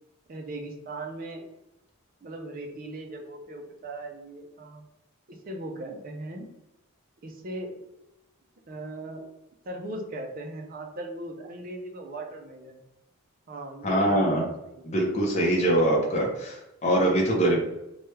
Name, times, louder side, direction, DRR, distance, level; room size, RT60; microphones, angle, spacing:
voice 1, 0.3-1.4 2.2-4.8 5.3-6.5 7.2-7.7 8.7-9.3 9.7-12.8 13.5-14.8 17.4-17.6, right 1 dB, 40° right, 3 dB, 0.5 m, -38 dB
voice 2, 13.8-14.4 14.9-17.6, right 1 dB, 30° left, -3 dB, 0.6 m, -23 dB
3.1 x 2.2 x 3.1 m, 0.92 s
head